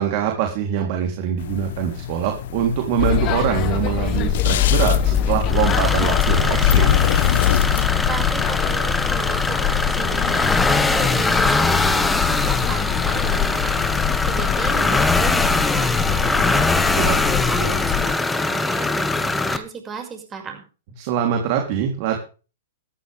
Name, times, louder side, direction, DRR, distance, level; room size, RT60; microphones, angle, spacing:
voice 1, 0.0-7.0 16.9-17.2 21.0-22.2, right 9 dB, 50° right, 3 dB, 3.5 m, -23 dB
sound 1, 1.4-7.9, left 10 dB, 60° left, 1.0 m, -26 dB
sound 2, 3.0-18.1, left 10 dB, 35° left, 1.2 m, -23 dB
sound 3, 5.5-19.6, left 3 dB, 5° left, 1.6 m, -22 dB
voice 2, 8.1-10.4 10.7-20.6, right 6 dB, 20° right, 4 dB, 6.0 m, -34 dB
15.5 x 14.0 x 3.6 m, 0.35 s
hypercardioid pair, 125°, 0 cm